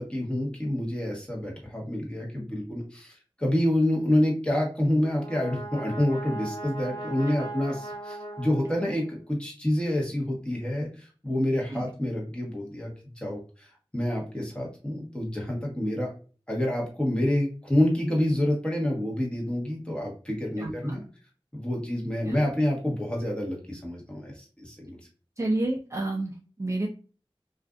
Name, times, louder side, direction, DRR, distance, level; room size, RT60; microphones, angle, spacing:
voice 1, 0.0-12.9 13.2-13.7 13.9-16.1 16.5-21.0 21.5-25.0, left 1 dB, 10° left, -2 dB, 1.1 m, -28 dB
Brass instrument, 4.9-9.3, right 2 dB, 50° left, 1.2 m, -39 dB
voice 2, 20.6-21.0 22.3-22.5 25.4-26.9, right 2 dB, 30° right, 1 dB, 0.4 m, -30 dB
2.5 x 2.4 x 2.3 m, 0.38 s
wide cardioid pair, 45°, 10 cm